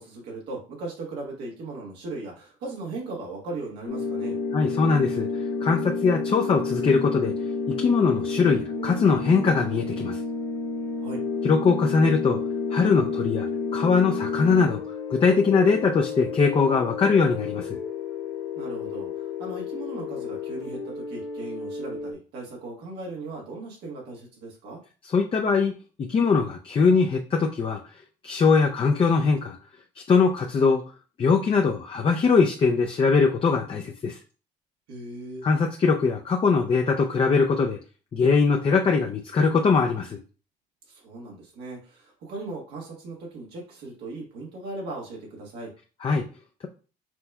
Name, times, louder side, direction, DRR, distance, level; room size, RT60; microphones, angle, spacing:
voice 1, 0.0-4.4 11.0-11.2 18.5-24.8 34.9-35.5 40.9-45.7, right 2 dB, 90° right, -2 dB, 1.4 m, -38 dB
sound 1, 3.9-22.1, left 4 dB, 90° left, 0.9 m, -31 dB
voice 2, 4.5-5.3 5.6-7.3 7.7-10.2 11.4-12.4 12.7-14.8 15.1-17.8 25.0-25.7 26.0-27.8 28.2-29.6 30.0-30.8 31.2-34.2 35.4-37.8 38.1-40.2 46.0-46.2, left 5 dB, 30° left, 2 dB, 0.5 m, -21 dB
6.0 x 3.3 x 2.3 m, 0.37 s
cardioid pair, 110°, 17 cm